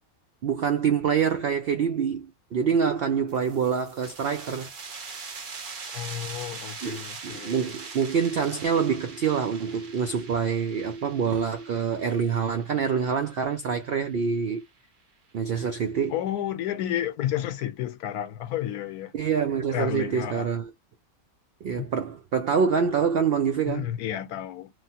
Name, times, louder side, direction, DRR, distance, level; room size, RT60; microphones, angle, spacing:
voice 1, 0.4-4.7 6.8-14.6 15.3-16.2 19.1-20.7 21.6-23.9, right 6 dB, 85° right, 0.5 m, -26 dB
sound 1, 3.3-14.6, right 4 dB, 45° right, 0.7 m, -42 dB
voice 2, 5.9-7.7 16.1-19.1 19.7-20.5 21.8-21.9 23.6-24.7, left 11 dB, 80° left, 1.2 m, -31 dB
3.1 x 2.1 x 2.8 m
omnidirectional pair, 1.6 m